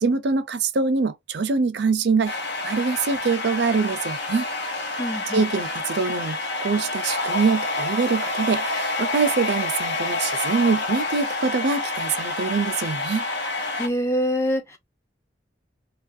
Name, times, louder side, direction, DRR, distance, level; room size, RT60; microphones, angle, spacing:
voice 1, 0.0-2.4 2.6-4.5 5.3-13.2, right 4 dB, 70° right, 0.5 m, -24 dB
sound 1, 2.3-13.9, left 2 dB, 70° left, 0.7 m, -28 dB
voice 2, 5.0-5.4 13.7-14.8, equal, 15° left, 0.5 m, -25 dB
2.9 x 2.4 x 2.5 m
head